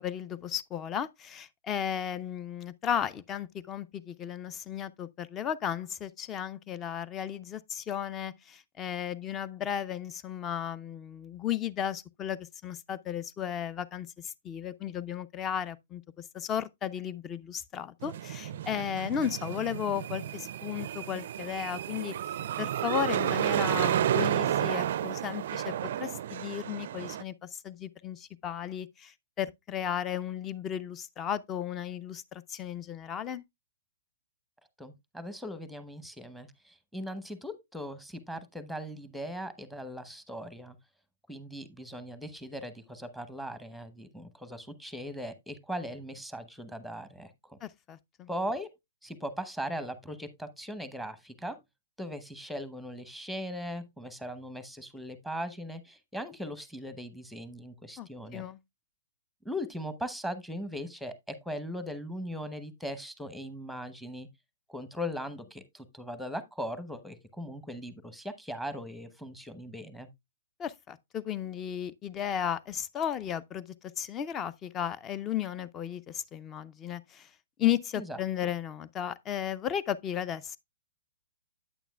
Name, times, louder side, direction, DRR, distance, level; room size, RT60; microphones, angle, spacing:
voice 1, 0.0-16.0 16.3-22.1 22.6-33.4 47.6-48.3 58.0-58.6 70.6-73.7 74.0-77.3 77.6-80.6, left 9 dB, 25° left, 0.5 m, -34 dB
sound 1, 18.0-27.2, right 11 dB, 55° right, 0.4 m, -31 dB
voice 2, 34.8-40.8 41.3-47.6 48.3-48.7 49.0-51.6 52.0-58.5 59.4-64.3 64.7-70.1 78.0-78.5, equal, ahead, 0.9 m, -39 dB
9.0 x 8.7 x 2.3 m
figure-of-eight pair, 120°, 0 cm